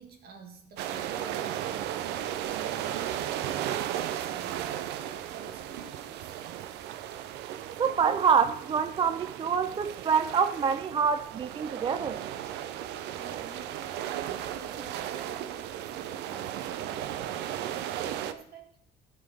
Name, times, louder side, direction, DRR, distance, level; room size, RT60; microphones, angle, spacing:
voice 1, 0.0-2.2 2.6-4.7 4.9-6.4 13.1-18.8, right 5 dB, 65° right, 1.8 m, -48 dB
sound 1, 0.8-18.3, right 11 dB, 85° right, 0.6 m, -35 dB
voice 2, 7.8-12.2, right 6 dB, 30° right, 0.4 m, -26 dB
13.0 x 4.4 x 5.3 m
cardioid pair, 110°, 17 cm